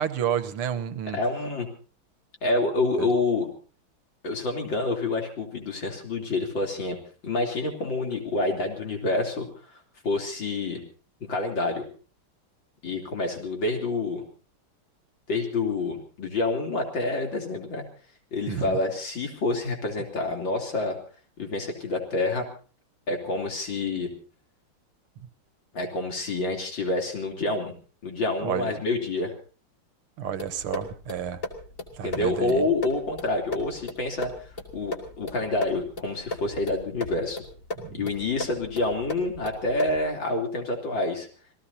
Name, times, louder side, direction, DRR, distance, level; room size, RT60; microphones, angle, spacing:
voice 1, 0.0-1.2 3.0-3.1 18.5-18.8 28.4-28.7 30.2-31.4 31.9-32.7 37.8-38.1, right 9 dB, 80° right, 12 dB, 2.0 m, -30 dB
voice 2, 1.1-1.7 2.4-3.5 4.2-7.0 7.2-9.5 10.0-10.8 11.2-11.8 12.8-14.2 15.3-17.8 18.3-21.0 21.4-22.5 23.1-24.1 25.7-27.7 28.0-29.3 32.0-34.3 34.7-37.4 37.9-41.3, left 2 dB, 60° left, 3 dB, 4.0 m, -27 dB
sound 1, 30.4-40.1, left 2 dB, 40° left, 2.7 m, -37 dB
27.5 x 17.5 x 2.8 m, 0.39 s
omnidirectional pair, 2.4 m